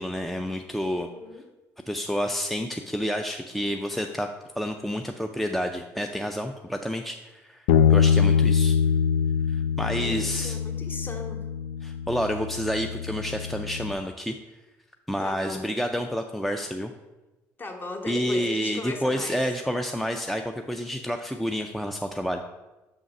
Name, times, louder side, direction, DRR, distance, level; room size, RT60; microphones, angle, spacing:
voice 1, 0.0-1.1 1.9-7.6 7.9-8.8 9.5-10.6 11.8-14.4 15.1-16.9 18.1-22.4, equal, ahead, 5 dB, 0.4 m, -29 dB
voice 2, 0.9-1.4 10.0-11.4 15.2-15.7 17.6-19.4, left 2 dB, 30° left, 4 dB, 1.1 m, -37 dB
Bass guitar, 7.7-13.9, left 7 dB, 90° left, 0.3 m, -24 dB
6.9 x 3.7 x 5.3 m, 1.1 s
supercardioid pair, 90°, 7 cm